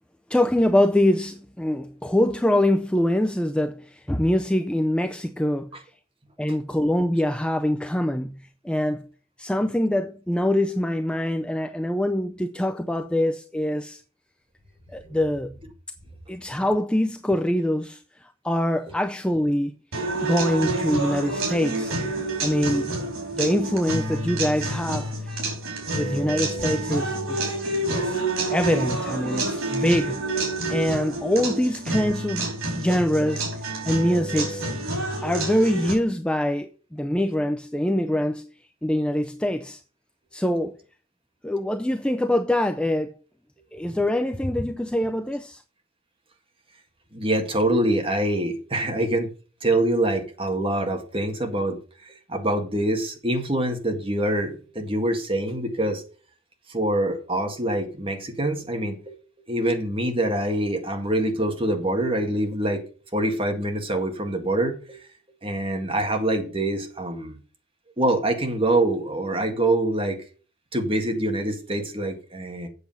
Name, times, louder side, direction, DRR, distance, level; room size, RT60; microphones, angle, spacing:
voice 1, 0.3-5.8 6.4-9.1 9.4-14.0 14.9-15.5 16.3-19.8 20.2-21.9 22.4-22.9 23.3-25.1 25.9-27.6 27.8-28.2 28.5-30.2 30.7-33.4 33.8-34.6 35.2-38.5 38.8-39.8 40.3-40.8 41.4-43.1 43.7-45.6, left 1 dB, 5° left, 0.4 m, -24 dB
sound 1, 19.9-35.9, right 2 dB, 85° right, 4.6 m, -28 dB
voice 2, 32.9-33.3 34.2-34.3 47.1-49.3 49.6-51.8 52.1-56.0 56.7-59.2 59.5-62.8 63.1-65.0 65.4-67.4 68.0-70.2 70.7-72.7, right 1 dB, 25° right, 1.8 m, -25 dB
8.2 x 7.1 x 5.6 m
head